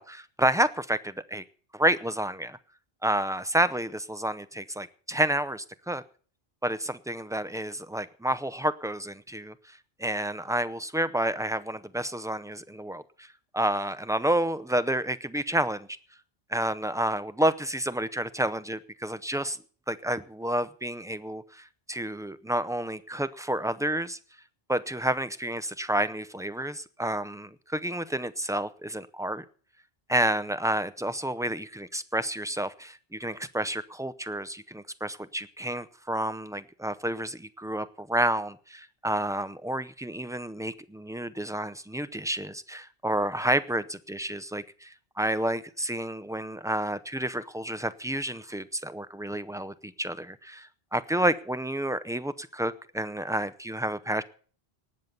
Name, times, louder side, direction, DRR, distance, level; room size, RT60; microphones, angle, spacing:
voice 1, 0.0-1.4 1.7-2.6 3.0-6.0 6.6-9.5 10.0-13.3 13.5-15.9 16.5-19.6 19.9-24.2 24.7-29.4 30.1-54.2, right 1 dB, 5° right, 13 dB, 0.5 m, -30 dB
18.5 x 7.4 x 6.7 m, 0.43 s
omnidirectional pair, 1.0 m